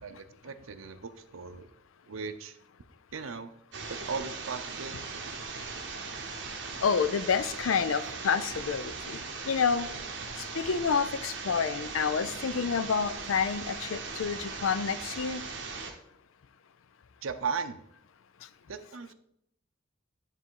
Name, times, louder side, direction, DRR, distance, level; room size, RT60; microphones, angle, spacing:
voice 1, 0.0-1.7 2.1-2.6 3.1-3.5 3.9-5.2 17.2-17.8 18.7-19.1, right 5 dB, 85° right, 10 dB, 0.6 m, -37 dB
sound 1, 3.7-15.9, right 4 dB, 60° right, 1.0 m, -39 dB
voice 2, 6.8-9.2 9.5-9.9 10.5-15.4, left 6 dB, 80° left, 14 dB, 0.4 m, -28 dB
9.8 x 3.4 x 4.6 m, 0.76 s
head